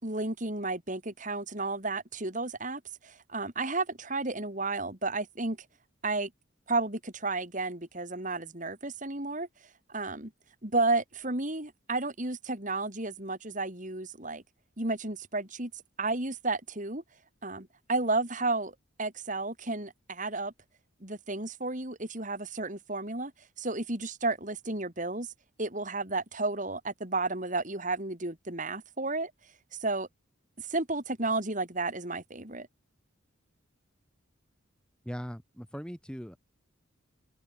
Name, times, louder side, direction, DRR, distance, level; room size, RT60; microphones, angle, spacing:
voice 1, 0.0-5.6 6.0-6.3 6.7-9.5 9.9-10.3 10.6-14.4 14.8-15.7 16.0-17.0 17.4-18.7 19.0-20.5 21.0-23.3 23.6-25.3 25.6-29.3 29.8-30.1 30.7-32.7, right 3 dB, 35° right, 3.3 m, -32 dB
voice 2, 35.0-36.4, equal, 5° left, 6.8 m, -39 dB
open air
head